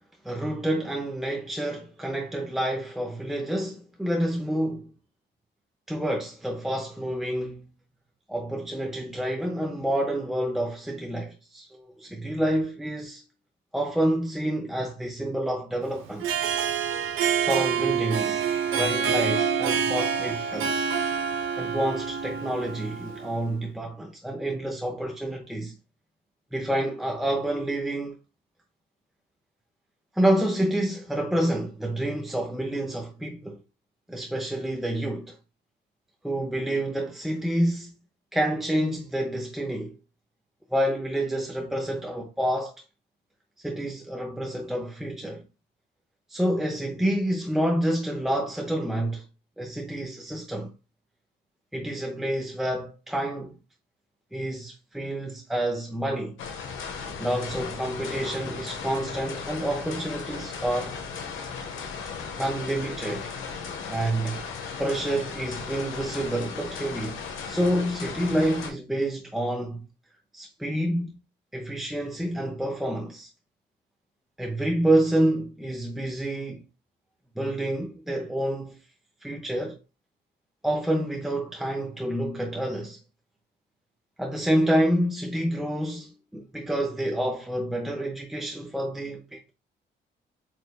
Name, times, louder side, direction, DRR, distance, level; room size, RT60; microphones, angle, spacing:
voice 1, 0.2-4.9 5.9-7.6 8.3-13.2 13.7-16.4 17.4-18.5 18.7-20.9 21.6-25.7 26.5-28.2 30.2-33.6 34.1-35.4 36.2-37.9 38.3-40.0 40.7-42.7 43.6-45.4 46.3-49.3 49.6-50.7 51.7-53.6 54.3-56.4 57.2-61.0 62.4-63.3 63.9-64.5 64.8-67.2 67.5-69.9 70.3-71.2 71.5-73.3 74.4-76.7 77.4-78.8 79.2-79.8 80.6-83.0 84.2-89.5, right 1 dB, ahead, 0.6 m, -28 dB
Harp, 16.1-23.4, right 7 dB, 85° right, 0.7 m, -27 dB
sound 1, 56.4-68.7, left 5 dB, 80° left, 0.9 m, -36 dB
4.4 x 3.2 x 2.2 m
cardioid pair, 90°, 20 cm